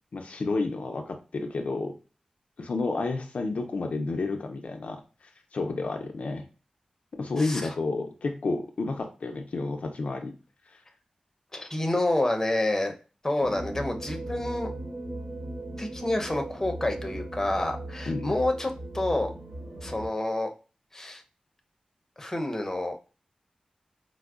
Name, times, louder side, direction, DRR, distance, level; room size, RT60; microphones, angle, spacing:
voice 1, 0.1-2.0 2.6-6.4 7.1-10.3 10.7-10.8 18.1-18.3, left 3 dB, 70° left, 5 dB, 0.4 m, -31 dB
voice 2, 7.4-7.7 11.5-12.9 13.2-14.7 15.8-19.3 19.8-20.5 20.9-21.2 22.2-23.0, left 1 dB, 20° left, 3 dB, 0.6 m, -28 dB
sound 1, 13.4-20.1, right 1 dB, 60° right, 1.2 m, -38 dB
4.4 x 2.0 x 2.4 m, 0.34 s
cardioid pair, 60°, 2 cm